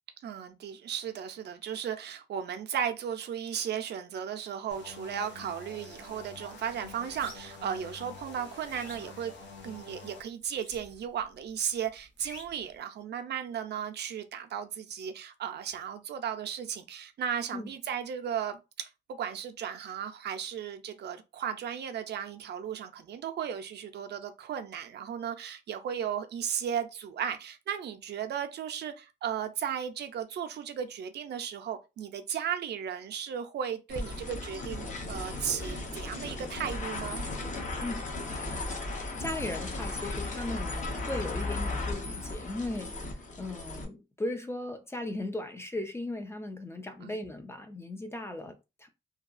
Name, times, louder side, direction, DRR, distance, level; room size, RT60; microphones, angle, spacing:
voice 1, 0.2-9.3 9.6-37.2 47.0-47.2, right 8 dB, 70° right, 0.4 m, -35 dB
sound 1, 4.7-10.2, left 4 dB, 85° left, 0.7 m, -47 dB
sound 2, 5.9-6.2 6.5-7.7 8.1-9.8 10.5-11.2 11.5-12.7, equal, 70° left, 1.5 m, -49 dB
sound 3, 33.9-43.9, left 2 dB, 45° left, 0.7 m, -36 dB
voice 2, 38.8-48.9, left 1 dB, 15° left, 0.3 m, -37 dB
2.7 x 2.3 x 2.4 m
wide cardioid pair, 150°, 18 cm